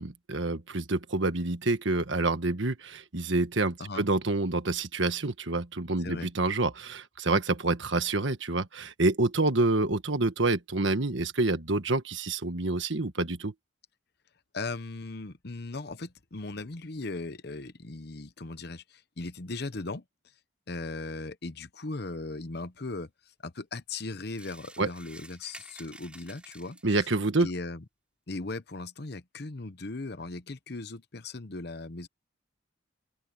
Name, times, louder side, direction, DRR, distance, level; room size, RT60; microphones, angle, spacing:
voice 1, 0.0-13.5 24.8-24.9 26.8-27.5, right 2 dB, 70° right, 1.5 m, -27 dB
voice 2, 6.0-6.3 14.5-20.0 20.7-23.1 23.4-27.1 27.4-27.8 28.3-32.1, left 3 dB, 55° left, 1.0 m, -38 dB
sound 1, 24.3-27.2, right 1 dB, 5° right, 7.9 m, -50 dB
open air
head